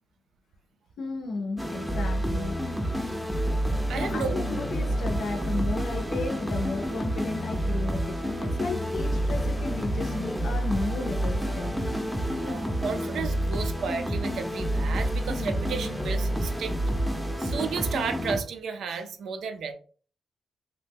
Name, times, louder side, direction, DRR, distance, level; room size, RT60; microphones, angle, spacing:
voice 1, 1.0-2.6 3.9-11.8, left 3 dB, 80° left, 0.6 m, -34 dB
sound 1, 1.6-18.4, equal, 5° right, 0.5 m, -29 dB
voice 2, 3.9-4.3 12.4-16.8 17.4-19.7, right 5 dB, 80° right, 0.4 m, -33 dB
2.8 x 2.1 x 3.4 m
cardioid pair, 70°, 0 cm